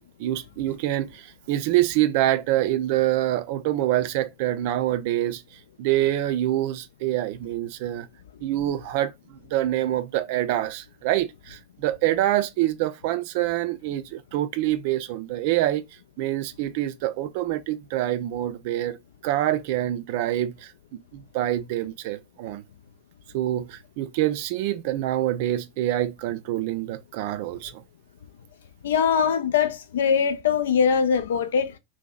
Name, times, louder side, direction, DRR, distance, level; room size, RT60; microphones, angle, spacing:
voice 1, 0.2-5.4 5.8-8.1 8.4-15.8 16.2-19.0 19.2-20.7 21.1-22.6 23.3-27.8, right 14 dB, 50° right, 0.3 m, -26 dB
voice 2, 28.8-31.7, left 7 dB, 60° left, 0.3 m, -22 dB
2.7 x 2.2 x 2.4 m
figure-of-eight pair, 90°, 0 cm